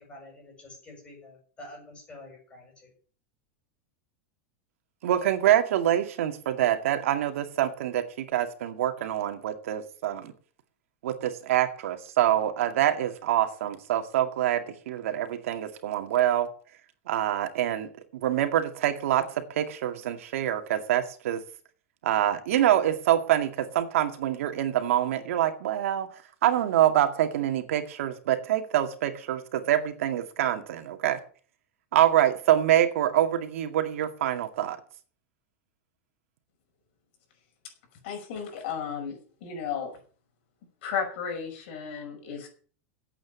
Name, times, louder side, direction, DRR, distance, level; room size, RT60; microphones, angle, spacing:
voice 1, 0.0-2.9, left 1 dB, 15° left, 0 dB, 7.1 m, -48 dB
voice 2, 5.0-10.3 11.0-16.5 17.1-21.4 22.0-26.1 26.4-31.2 31.9-34.8, right 12 dB, 80° right, 7 dB, 2.1 m, -25 dB
voice 3, 38.0-39.9 40.8-42.5, left 7 dB, 55° left, 4 dB, 5.7 m, -34 dB
9.8 x 8.6 x 8.5 m, 0.43 s
supercardioid pair, 165°, 7 cm